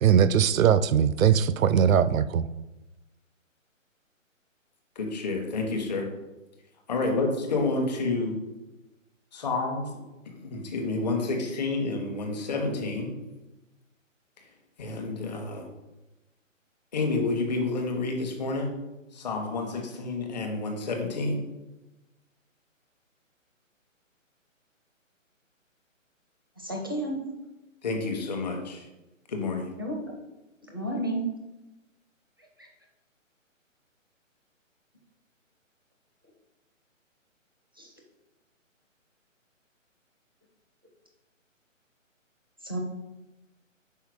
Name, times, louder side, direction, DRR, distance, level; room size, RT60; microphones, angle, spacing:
voice 1, 0.0-2.4, right 8 dB, 85° right, 15 dB, 0.5 m, -20 dB
voice 2, 5.0-6.0 6.9-8.4 9.3-9.9 10.2-13.1 14.8-15.7 16.9-18.7 19.1-21.4 27.8-28.9 29.3-29.7, left 3 dB, 35° left, 3 dB, 1.0 m, -29 dB
voice 3, 26.6-27.2 29.8-30.0 30.7-31.2 37.8-37.9 42.6-42.8, right 1 dB, 20° right, 0 dB, 0.4 m, -31 dB
5.6 x 4.3 x 4.7 m, 1.0 s
hypercardioid pair, 165°, 40 cm